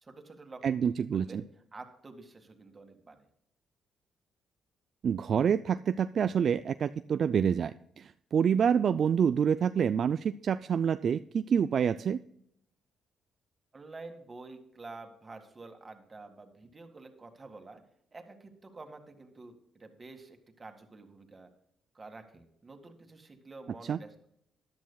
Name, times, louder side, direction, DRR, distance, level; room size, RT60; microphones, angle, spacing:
voice 1, 0.0-0.6 1.1-1.4 1.7-3.3 13.7-17.8 18.1-21.5 21.9-24.3, right 3 dB, 30° right, 5 dB, 1.9 m, -49 dB
voice 2, 0.6-1.4 5.0-12.2 23.9-24.0, right 7 dB, 55° right, 12 dB, 0.3 m, -27 dB
13.5 x 10.5 x 2.3 m, 0.73 s
cardioid pair, 90°, 0 cm